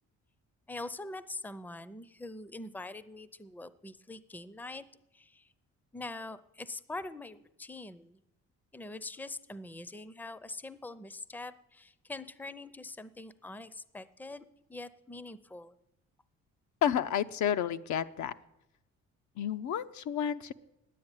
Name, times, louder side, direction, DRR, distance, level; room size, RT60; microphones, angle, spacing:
voice 1, 0.7-4.8 5.1-5.5 5.9-8.2 8.7-14.4 14.7-15.7, left 2 dB, 5° left, 15 dB, 0.6 m, -43 dB
voice 2, 16.8-18.3 19.4-20.5, left 9 dB, 75° left, 10 dB, 0.7 m, -31 dB
10.0 x 9.3 x 9.0 m, 0.89 s
cardioid pair, 90°, 30 cm